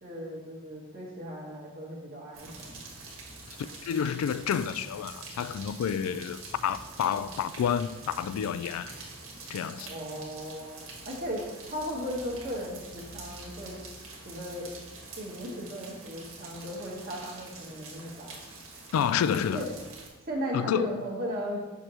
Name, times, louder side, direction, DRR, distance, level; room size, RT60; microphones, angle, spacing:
voice 1, 0.0-2.8 9.7-13.8 14.1-14.7 15.2-18.3 19.5-19.6 20.3-21.6, equal, 45° right, 1.3 m, -36 dB
sound 1, 2.3-20.1, right 3 dB, 75° right, 1.6 m, -45 dB
voice 2, 3.8-8.9 9.5-9.9 18.9-19.7 20.5-21.0, left 8 dB, 90° left, 0.3 m, -29 dB
6.4 x 6.2 x 3.0 m
head